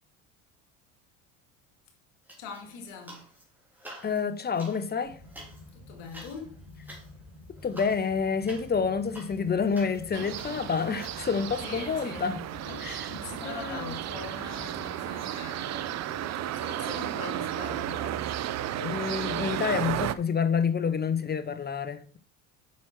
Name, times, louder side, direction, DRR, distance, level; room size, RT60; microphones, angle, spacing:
sound 1, 2.3-3.4 3.7-11.2, right 1 dB, 5° right, 3.4 m, -49 dB
voice 1, 2.4-3.2 5.7-6.6 11.6-18.3, left 5 dB, 70° left, 2.3 m, -42 dB
voice 2, 4.0-5.2 7.6-12.4 12.8-13.1 13.4-13.9 18.8-22.2, left 6 dB, 25° left, 0.9 m, -28 dB
sound 2, 5.0-14.9, left 2 dB, 45° left, 3.0 m, -49 dB
sound 3, 10.1-20.2, right 12 dB, 40° right, 0.6 m, -33 dB
7.1 x 6.2 x 4.5 m
hypercardioid pair, 75°, 40 cm